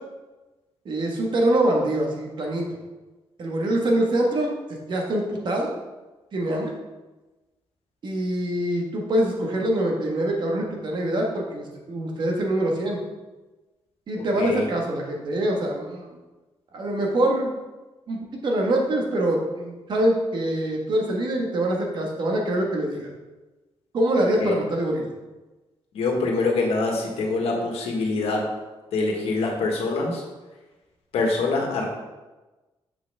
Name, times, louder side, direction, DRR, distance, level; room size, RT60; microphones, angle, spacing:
voice 1, 0.8-2.8 3.4-4.5 4.9-5.7 6.3-6.7 8.0-13.0 14.1-16.1 16.7-17.5 18.1-23.1 23.9-25.1, right 1 dB, 50° right, 0 dB, 1.5 m, -24 dB
voice 2, 14.2-14.7 24.4-24.6 25.9-28.4 28.9-30.2 31.1-31.9, left 3 dB, 85° left, 1 dB, 1.5 m, -25 dB
7.2 x 6.2 x 3.5 m, 1.2 s
cardioid pair, 135°, 10 cm